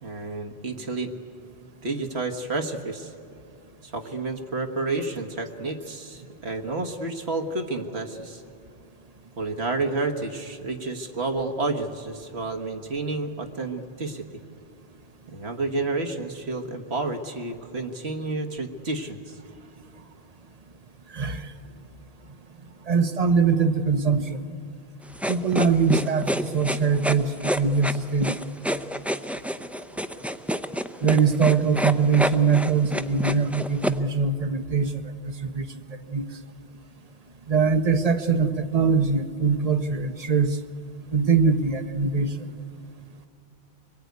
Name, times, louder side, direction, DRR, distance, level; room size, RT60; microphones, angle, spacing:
voice 1, 0.0-1.1 1.8-3.1 3.8-8.4 9.4-14.2 15.3-19.4, right 3 dB, 85° right, 5 dB, 1.8 m, -30 dB
voice 2, 21.1-21.5 22.9-24.4 25.3-28.5 31.0-35.7 36.1-36.3 37.5-40.6 41.1-42.3, right 5 dB, 40° right, 9 dB, 1.0 m, -22 dB
sound 1, 25.2-34.0, equal, ahead, 0.4 m, -27 dB
24.0 x 21.0 x 9.4 m, 2.5 s
omnidirectional pair, 1.1 m